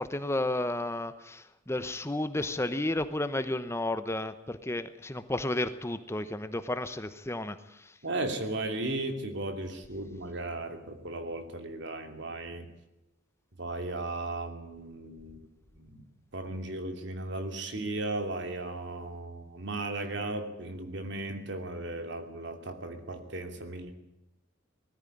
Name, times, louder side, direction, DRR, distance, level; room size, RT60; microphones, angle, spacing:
voice 1, 0.0-8.0, left 1 dB, 15° left, 11 dB, 0.9 m, -32 dB
voice 2, 8.0-12.7 13.6-15.5 15.8-16.0 16.3-23.9, right 2 dB, 60° right, 7 dB, 2.8 m, -36 dB
20.0 x 14.0 x 10.0 m, 0.92 s
head